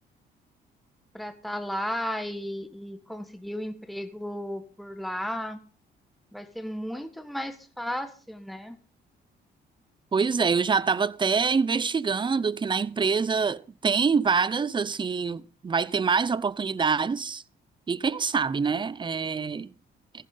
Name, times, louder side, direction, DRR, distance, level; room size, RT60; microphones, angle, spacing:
voice 1, 1.1-5.6 6.3-8.8, equal, ahead, 1.4 m, -34 dB
voice 2, 10.1-17.4 17.9-19.7, right 5 dB, 25° right, 0.5 m, -25 dB
14.5 x 11.0 x 3.9 m
cardioid pair, 90°, 20 cm